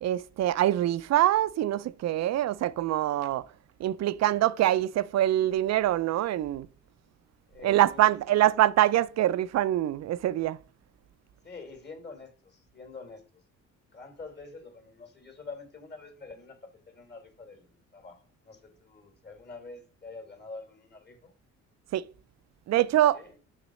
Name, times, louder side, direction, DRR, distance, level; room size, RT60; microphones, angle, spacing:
voice 1, 0.0-3.5 3.8-6.7 7.6-10.6 21.9-22.1 22.7-23.2, right 13 dB, 60° right, 0.5 m, -24 dB
voice 2, 7.5-8.4 11.4-13.4 13.9-21.3 23.1-23.4, left 3 dB, 35° left, 2.8 m, -46 dB
6.3 x 3.9 x 6.2 m
cardioid pair, 90°, 30 cm